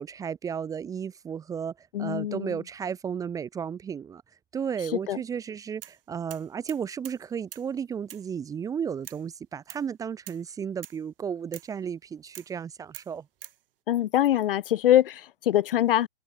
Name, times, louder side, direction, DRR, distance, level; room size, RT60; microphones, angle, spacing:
voice 1, 0.0-4.2 4.5-13.3, right 7 dB, 10° right, 1.2 m, -34 dB
voice 2, 1.9-2.6 5.1-5.2 13.9-16.1, left 12 dB, 65° left, 2.0 m, -23 dB
sound 1, 5.8-6.0 6.3-7.2 7.5-7.7 8.1-8.3 9.0-9.3 9.7-9.9 10.3-10.4 10.8-11.0 11.5-11.7 12.3-12.5 12.9-13.6, right 12 dB, 65° right, 7.1 m, -45 dB
hypercardioid pair, 160°, 30 cm